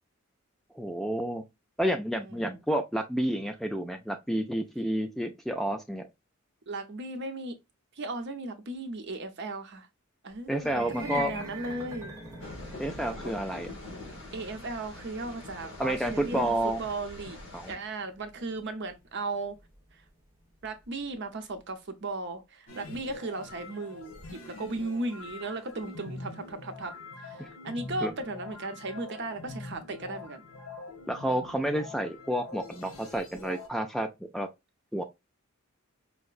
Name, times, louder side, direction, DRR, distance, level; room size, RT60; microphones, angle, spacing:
voice 1, 0.7-1.4 1.8-6.0 10.5-11.3 12.8-13.7 15.8-16.8 17.5-17.7 27.4-27.5 28.0-28.1 31.1-34.1 34.3-34.5 34.9-35.0, equal, ahead, 0.3 m, -30 dB
voice 2, 2.2-2.6 6.7-7.6 8.0-9.9 10.2-12.1 14.3-17.4 17.7-19.6 19.9-20.0 20.6-24.1 24.5-26.9 27.2-30.4, right 2 dB, 55° right, 0.7 m, -36 dB
sound 1, 10.5-20.9, right 3 dB, 15° right, 1.0 m, -45 dB
sound 2, 12.4-17.7, left 2 dB, 60° left, 1.2 m, -43 dB
sound 3, 22.7-33.7, left 2 dB, 80° left, 1.1 m, -44 dB
4.6 x 2.1 x 2.4 m
head